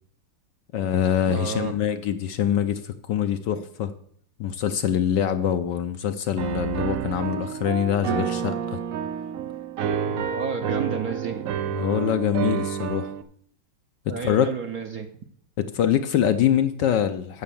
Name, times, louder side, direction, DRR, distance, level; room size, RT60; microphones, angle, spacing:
voice 1, 0.7-3.9 4.4-8.8 10.1-10.3 11.7-13.1 14.2-14.5 15.6-17.4, left 9 dB, 70° left, 9 dB, 1.2 m, -24 dB
voice 2, 1.3-1.7 10.3-11.5 14.1-15.1, right 6 dB, 60° right, 6 dB, 1.0 m, -31 dB
Piano, 6.4-13.2, right 8 dB, 75° right, 0.7 m, -29 dB
9.0 x 7.4 x 6.9 m, 0.62 s
omnidirectional pair, 2.3 m